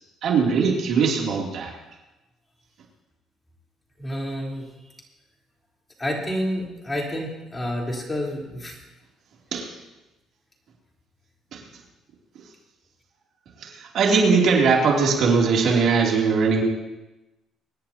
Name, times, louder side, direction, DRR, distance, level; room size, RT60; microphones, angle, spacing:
voice 1, 0.2-1.7 9.5-9.7 11.5-11.6 13.6-16.6, right 5 dB, 65° right, -1 dB, 2.9 m, -20 dB
voice 2, 4.0-4.7 6.0-8.8, equal, 15° left, -2 dB, 3.8 m, -29 dB
24.5 x 10.5 x 2.9 m, 1.0 s
cardioid pair, 90°, 0 cm